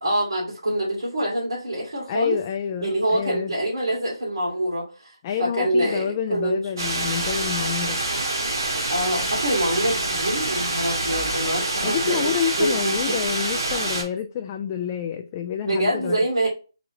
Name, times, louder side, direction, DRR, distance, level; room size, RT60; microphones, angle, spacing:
voice 1, 0.0-2.4 2.8-5.1 5.4-6.6 8.9-12.3 12.6-12.8 13.1-13.2 15.7-16.5, right 1 dB, 75° right, 2.2 m, -25 dB
voice 2, 2.1-3.5 5.2-8.0 11.8-16.2, left 8 dB, 25° left, 0.3 m, -28 dB
sound 1, 6.8-14.0, right 2 dB, 60° right, 1.6 m, -26 dB
4.0 x 3.0 x 3.7 m
figure-of-eight pair, 155°, 3 cm